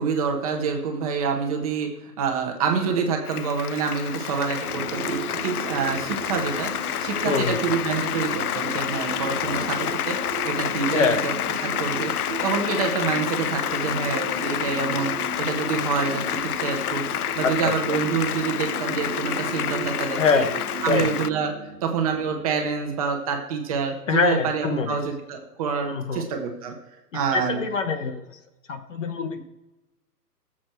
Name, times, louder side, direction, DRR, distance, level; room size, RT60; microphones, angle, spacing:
voice 1, 0.0-6.7 7.0-10.2 10.4-11.3 11.6-12.1 12.4-17.0 17.3-20.5 20.8-21.5 21.8-26.7 27.1-27.6, right 5 dB, 20° right, 2 dB, 1.3 m, -27 dB
Applause, 3.2-21.3, left 11 dB, 65° left, 0.5 m, -29 dB
sound 1, 4.6-22.8, right 5 dB, 45° right, 1.0 m, -36 dB
voice 2, 7.2-7.6 10.9-11.2 17.4-17.7 20.2-20.6 20.9-21.1 24.1-24.9 25.9-26.2 27.3-28.2 28.7-29.4, left 5 dB, 50° left, 8 dB, 1.3 m, -24 dB
17.0 x 7.5 x 4.5 m, 1.0 s
hypercardioid pair, 160°, 48 cm